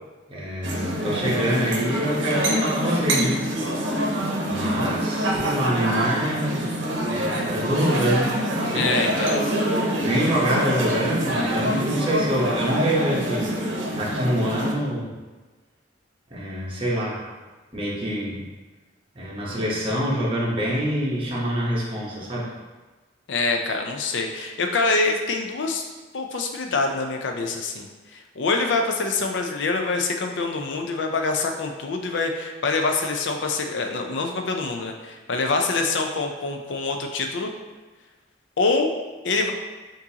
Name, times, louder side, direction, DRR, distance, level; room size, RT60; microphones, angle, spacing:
voice 1, 0.3-3.4 4.5-6.7 7.1-8.9 10.0-13.5 13.9-15.1 16.3-17.3 17.7-18.4 19.1-22.5, equal, 30° right, -6 dB, 1.1 m, -25 dB
sound 1, 0.6-14.7, right 1 dB, 85° right, 0.7 m, -25 dB
voice 2, 8.7-9.4 23.3-25.8 26.1-37.5 38.6-38.9 39.2-39.5, left 3 dB, 75° left, 3 dB, 0.5 m, -25 dB
6.0 x 2.7 x 2.8 m, 1.3 s
head